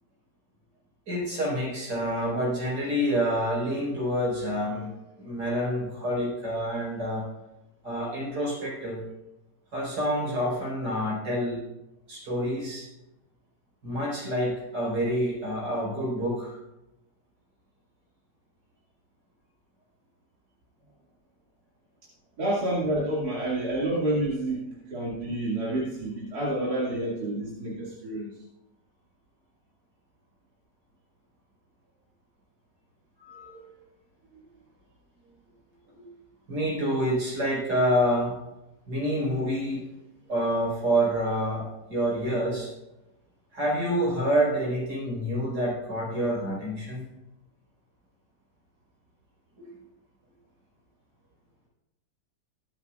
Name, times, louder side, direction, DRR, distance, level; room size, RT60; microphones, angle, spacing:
voice 1, 1.1-4.9 5.2-7.3 7.8-9.0 9.7-11.6 12.1-12.9 13.8-16.6 33.2-33.7 34.3-34.4 35.9-36.0 36.5-38.4 38.9-39.8 40.3-42.7 43.5-47.1 49.6-49.7, equal, 85° right, -4 dB, 5.6 m, -27 dB
voice 2, 22.4-28.3, right 1 dB, 65° right, -6 dB, 2.9 m, -29 dB
21.5 x 8.5 x 2.5 m, 0.94 s
omnidirectional pair, 1.8 m